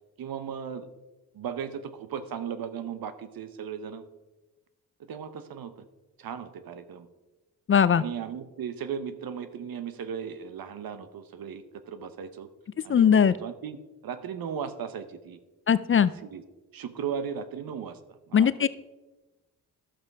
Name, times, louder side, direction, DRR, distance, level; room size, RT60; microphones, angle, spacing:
voice 1, 0.2-0.9 1.3-4.0 5.1-5.9 6.2-7.1 7.9-12.5 12.8-15.4 15.9-16.4 16.7-18.0 18.3-18.7, right 7 dB, 70° right, 12 dB, 1.0 m, -36 dB
voice 2, 7.7-8.0 12.9-13.3 15.7-16.1 18.3-18.7, left 7 dB, 35° left, 16 dB, 0.4 m, -20 dB
12.0 x 7.5 x 4.8 m, 1.1 s
cardioid pair, 70°, 37 cm